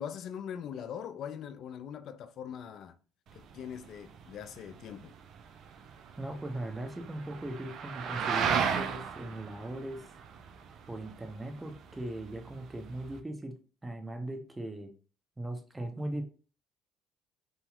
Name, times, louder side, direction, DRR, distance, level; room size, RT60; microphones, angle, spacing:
voice 1, 0.0-2.9 3.3-5.1, left 8 dB, 60° left, 0.3 m, -41 dB
sound 1, 3.3-13.2, right 7 dB, 60° right, 0.4 m, -36 dB
voice 2, 6.2-10.1 10.9-13.6 13.8-14.9 15.4-16.2, right 1 dB, 15° right, 0.7 m, -39 dB
2.8 x 2.7 x 2.4 m
hypercardioid pair, 65°, 0 cm